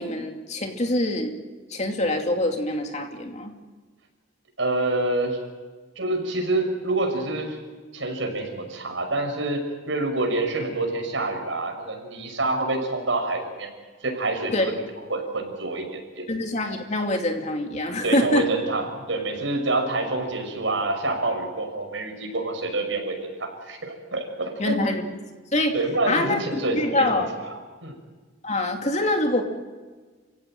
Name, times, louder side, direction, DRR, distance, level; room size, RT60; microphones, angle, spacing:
voice 1, 0.0-1.3 1.7-3.5 14.5-14.7 16.3-18.4 24.6-25.0 25.5-25.7 26.1-27.3 28.4-29.4, left 1 dB, 35° left, 4 dB, 2.7 m, -25 dB
voice 2, 4.6-5.4 6.0-7.6 7.9-13.7 14.0-14.7 15.1-16.2 18.0-24.8 25.7-27.2 27.8-27.9, right 2 dB, 80° right, 3 dB, 6.1 m, -27 dB
29.5 x 16.5 x 9.1 m, 1.4 s
head